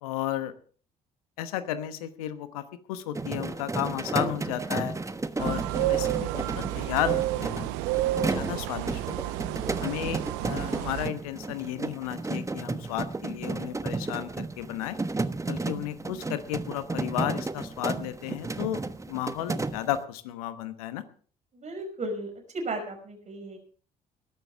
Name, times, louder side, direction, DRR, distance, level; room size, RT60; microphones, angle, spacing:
voice 1, 0.0-0.5 1.4-2.6 2.9-4.9 5.4-7.7 8.2-9.4 9.8-15.0 15.5-18.8 19.1-21.0, left 12 dB, 75° left, 12 dB, 1.1 m, -33 dB
sound 1, 3.2-20.0, right 3 dB, 15° right, 1.2 m, -33 dB
sound 2, 5.4-11.1, right 16 dB, 65° right, 0.7 m, -30 dB
voice 2, 21.6-23.6, right 2 dB, 40° right, 2 dB, 5.9 m, -35 dB
20.5 x 12.0 x 3.5 m, 0.42 s
figure-of-eight pair, 50°, 19 cm